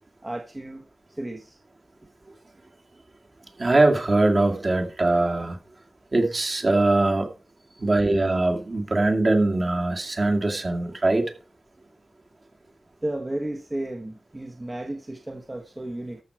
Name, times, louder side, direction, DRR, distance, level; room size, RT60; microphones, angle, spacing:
voice 1, 0.2-0.9 1.2-1.6 7.7-7.9 13.0-16.2, right 1 dB, 25° right, 1.3 m, -33 dB
voice 2, 3.6-5.6 6.1-7.3 7.8-11.2, right 2 dB, 40° right, 2.3 m, -22 dB
13.5 x 6.3 x 4.6 m
wide cardioid pair, 100°, 0 cm